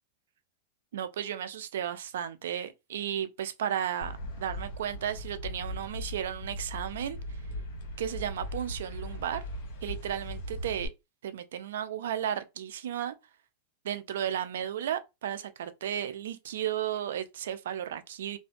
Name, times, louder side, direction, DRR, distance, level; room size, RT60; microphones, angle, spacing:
voice 1, 0.9-7.2 8.0-9.5 9.8-10.9 11.2-13.2 13.8-18.4, right 10 dB, 75° right, 0.3 m, -34 dB
sound 1, 4.0-10.9, equal, 60° left, 1.0 m, -39 dB
2.5 x 2.1 x 2.4 m
hypercardioid pair, 110°, 0 cm